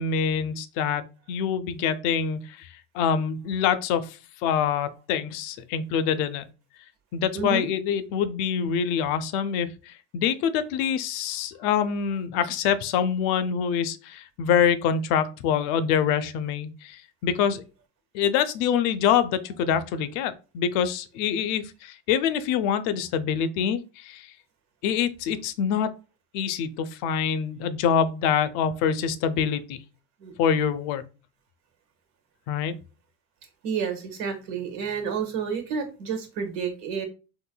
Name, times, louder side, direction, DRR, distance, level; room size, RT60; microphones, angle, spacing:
voice 1, 0.0-6.5 7.1-17.6 18.1-24.3 24.8-25.9 26.3-29.8 30.4-31.0 32.5-32.8, left 7 dB, 70° left, 0.6 m, -25 dB
voice 2, 7.3-7.7 11.7-11.9 30.2-30.3 33.6-37.0, right 6 dB, 65° right, 1.4 m, -30 dB
3.8 x 2.5 x 2.2 m
supercardioid pair, 110°, 42 cm